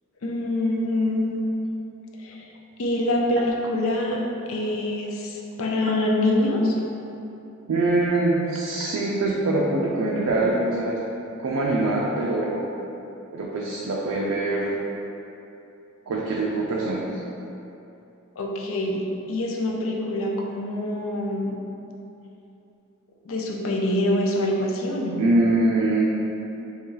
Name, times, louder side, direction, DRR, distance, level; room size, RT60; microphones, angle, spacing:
voice 1, 0.2-1.5 2.2-2.5 2.8-4.2 4.5-6.8 18.4-21.6 23.3-25.2, left 1 dB, 70° left, -1 dB, 0.5 m, -25 dB
voice 2, 7.7-11.0 11.4-12.6 13.3-14.7 16.1-17.2 25.2-26.0, right 2 dB, 80° right, -4 dB, 0.4 m, -23 dB
3.0 x 2.8 x 3.7 m, 2.9 s
head